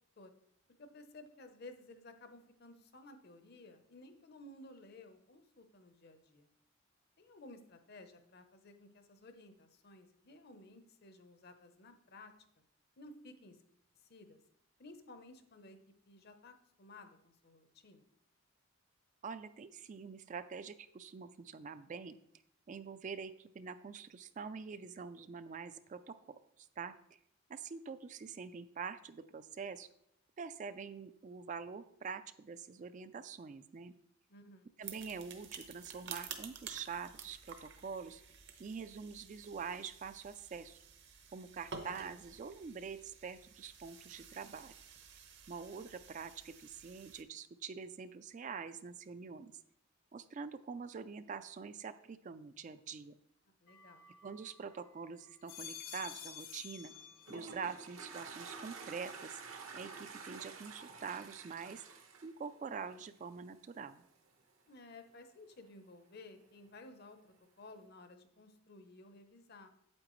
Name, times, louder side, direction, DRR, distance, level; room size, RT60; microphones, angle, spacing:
voice 1, 0.8-6.5 7.2-12.3 13.0-13.6 14.0-14.4 14.8-15.8 16.1-18.0 34.3-34.7 53.6-54.1 64.7-69.7, left 2 dB, 50° left, 8 dB, 0.8 m, -55 dB
voice 2, 19.2-22.2 22.7-27.2 27.5-29.9 30.4-33.9 34.8-38.2 38.6-40.8 41.3-44.7 45.5-49.5 50.1-53.1 54.2-56.9 57.3-59.4 59.7-61.8 62.2-64.0, right 5 dB, 35° right, 12 dB, 0.3 m, -45 dB
sound 1, 34.8-47.2, right 6 dB, 55° right, 0.9 m, -52 dB
sound 2, 53.7-54.8 55.3-57.7 58.0-58.6, left 8 dB, 85° left, 1.5 m, -51 dB
Toilet flush, 56.9-63.3, right 4 dB, 75° right, 1.1 m, -49 dB
8.7 x 8.3 x 3.1 m, 0.73 s
head